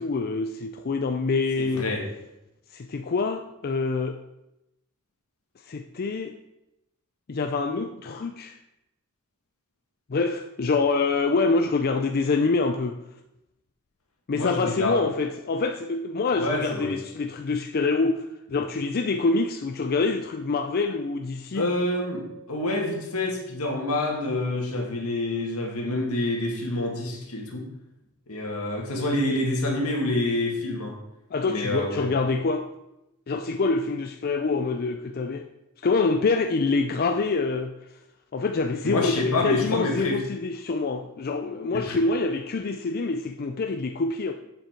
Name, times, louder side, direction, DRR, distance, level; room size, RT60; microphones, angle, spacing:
voice 1, 0.0-1.9 2.7-4.2 5.7-6.4 7.3-8.6 10.1-13.0 14.3-18.2 18.5-21.6 31.3-32.7 33.3-35.5 35.8-37.7 38.3-44.3, left 3 dB, 45° left, 6 dB, 0.5 m, -26 dB
voice 2, 1.6-2.1 14.3-15.0 16.4-17.0 21.5-27.7 28.3-31.0 31.5-32.1 38.8-40.2 41.7-42.0, left 2 dB, 80° left, 1 dB, 2.0 m, -27 dB
7.8 x 7.1 x 4.5 m, 0.90 s
head